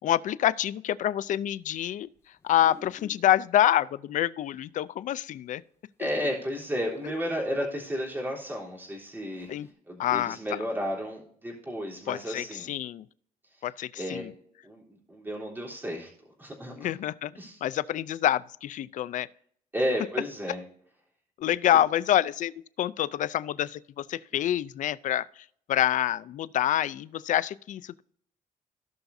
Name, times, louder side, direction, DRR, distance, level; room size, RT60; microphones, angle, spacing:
voice 1, 0.0-2.1 2.4-5.6 6.0-6.1 9.5-9.7 10.0-10.4 12.1-13.0 13.6-14.3 16.8-17.3 17.6-19.3 21.4-22.5 22.8-25.3 25.7-28.0, left 12 dB, 60° left, 0.4 m, -27 dB
sound 1, 2.1-3.3 5.3-5.4 6.6-6.7 8.1-8.2 8.9-9.0 9.2-9.7, left 2 dB, 20° left, 1.8 m, -51 dB
voice 2, 6.0-9.5 9.9-12.7 14.0-14.3 14.6-16.1 16.4-16.9 17.4-17.6 19.7-20.6, equal, 15° right, 3.5 m, -32 dB
17.0 x 5.8 x 2.7 m
cardioid pair, 135°, 15 cm